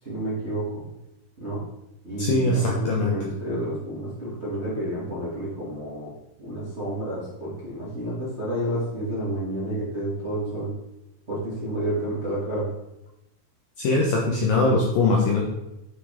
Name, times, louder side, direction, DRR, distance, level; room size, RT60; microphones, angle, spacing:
voice 1, 0.0-0.8 1.4-1.6 2.0-6.1 6.4-10.7 11.3-12.7, right 1 dB, 20° right, -8 dB, 1.9 m, -30 dB
voice 2, 2.2-3.2 13.8-15.4, left 2 dB, 70° left, -2 dB, 2.3 m, -21 dB
9.8 x 5.9 x 5.1 m, 0.91 s
omnidirectional pair, 5.4 m